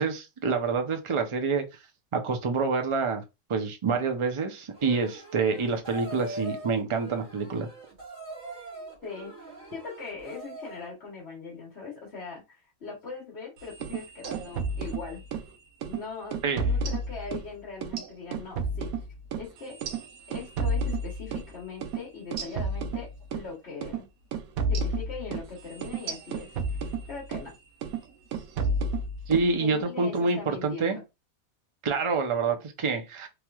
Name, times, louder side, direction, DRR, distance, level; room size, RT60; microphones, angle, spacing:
voice 1, 0.0-1.6 2.1-3.2 3.5-7.7 16.4-16.6 29.3-31.0 31.8-33.3, right 4 dB, 55° right, 0.3 m, -27 dB
sound 1, 4.7-10.9, right 2 dB, 35° right, 1.8 m, -42 dB
voice 2, 9.7-15.2 15.8-18.9 19.3-19.8 20.3-24.1 24.7-27.5 29.6-31.0, left 5 dB, 50° left, 1.3 m, -41 dB
sound 2, 13.7-15.5 15.8-16.0 16.3-17.5 17.8-21.5 21.8-22.0 22.3-23.5 23.8-24.0 24.3-27.5 27.8-28.1 28.3-29.5, right 2 dB, 90° right, 1.1 m, -31 dB
3.2 x 2.9 x 2.3 m
omnidirectional pair, 1.5 m